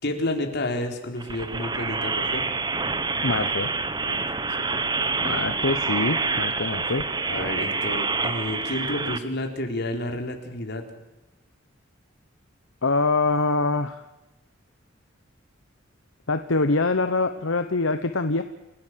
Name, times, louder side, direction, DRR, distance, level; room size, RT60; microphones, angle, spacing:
voice 1, 0.0-2.4 4.0-4.2 4.7-4.8 7.3-10.8, left 1 dB, 55° left, 3 dB, 4.2 m, -30 dB
sound 1, 1.2-9.2, right 4 dB, 20° right, 1.2 m, -27 dB
voice 2, 3.2-3.7 5.2-7.0 12.8-14.0 16.3-18.4, left 3 dB, 80° left, 9 dB, 1.2 m, -24 dB
30.0 x 16.0 x 7.7 m, 1.0 s
head